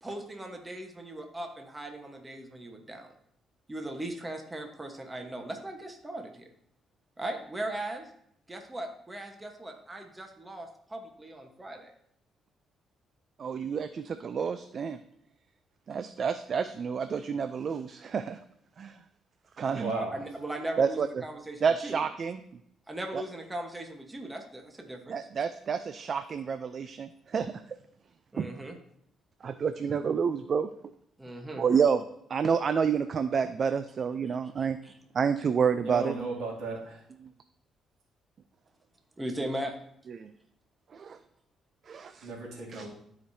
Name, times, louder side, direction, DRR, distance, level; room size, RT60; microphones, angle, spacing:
voice 1, 0.0-3.1 3.7-6.5 7.2-8.1 8.5-11.9 19.7-22.0 22.9-25.2 28.3-28.8 31.2-31.6 34.3-35.0 39.2-39.8, right 1 dB, 15° right, 4 dB, 1.2 m, -38 dB
voice 2, 13.4-15.0 15.9-18.4 18.8-19.0 19.6-19.9 20.8-21.2 21.6-22.4 23.1-23.2 25.1-27.5 28.4-28.5 29.4-30.7 31.6-32.0 32.3-34.8 35.1-36.1 40.1-40.3 40.9-41.2 41.9-42.3 42.7-42.9, right 6 dB, 50° right, 11 dB, 0.4 m, -29 dB
voice 3, 19.8-20.1 35.8-37.0 42.2-42.9, right 3 dB, 80° right, -3 dB, 2.6 m, -35 dB
13.0 x 5.0 x 2.7 m, 0.71 s
cardioid pair, 90°, 0 cm